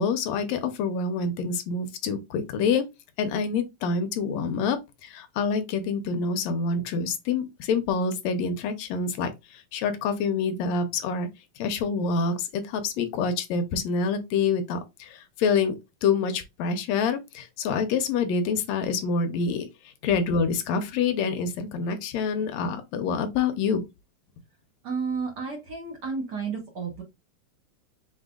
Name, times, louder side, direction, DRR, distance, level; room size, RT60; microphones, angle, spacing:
voice 1, 0.0-2.8 3.2-9.3 9.7-11.3 11.6-19.7 20.0-23.8, left 5 dB, 75° left, 1.9 m, -26 dB
voice 2, 24.8-27.0, right 5 dB, 80° right, 0.9 m, -32 dB
5.5 x 3.6 x 2.3 m
omnidirectional pair, 3.3 m